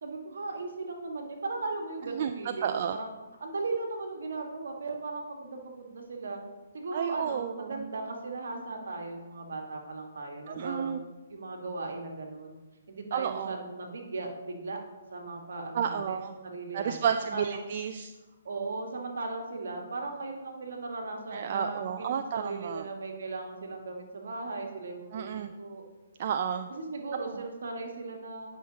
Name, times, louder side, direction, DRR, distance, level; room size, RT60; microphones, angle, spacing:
voice 1, 0.0-3.1 3.4-6.4 6.7-11.0 11.3-12.6 12.9-14.8 15.1-17.6 18.4-25.8 26.7-28.6, right 3 dB, 70° right, 2 dB, 1.4 m, -37 dB
voice 2, 2.6-3.0 6.9-7.9 10.5-11.0 13.1-13.6 15.7-16.3 16.7-18.1 21.3-22.9 25.1-25.5 26.2-26.7, right 8 dB, 50° right, 8 dB, 0.3 m, -31 dB
9.3 x 5.8 x 2.8 m, 1.2 s
figure-of-eight pair, 135°, 0 cm